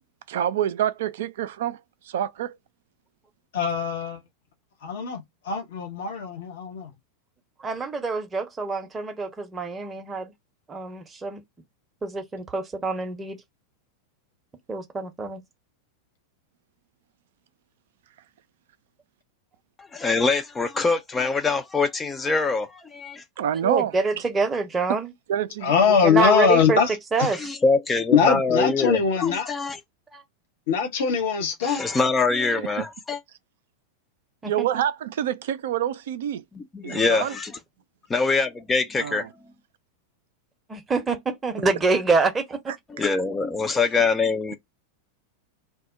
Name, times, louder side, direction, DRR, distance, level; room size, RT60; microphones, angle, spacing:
voice 1, 0.3-2.6 23.4-24.0 25.3-26.0 32.8-32.9 34.5-36.4 36.8-37.3 39.0-39.3 42.7-42.8, right 10 dB, 55° right, 0.3 m, -27 dB
voice 2, 3.5-4.2 4.8-6.9 25.6-26.9 27.2-27.3 28.1-29.5 30.7-31.8, left 6 dB, 55° left, 0.7 m, -22 dB
voice 3, 7.6-10.3 10.7-11.4 12.0-13.4 14.7-15.4 23.6-25.1 26.0-26.8 27.1-27.5 30.1-30.2 34.4-34.5 40.7-42.6, right 3 dB, 15° right, 0.7 m, -26 dB
voice 4, 19.8-23.2 27.3-29.8 31.6-33.2 36.5-37.5 38.1-39.3 42.9-44.6, left 4 dB, 15° left, 0.4 m, -24 dB
2.2 x 2.0 x 3.8 m
figure-of-eight pair, 90°, 0 cm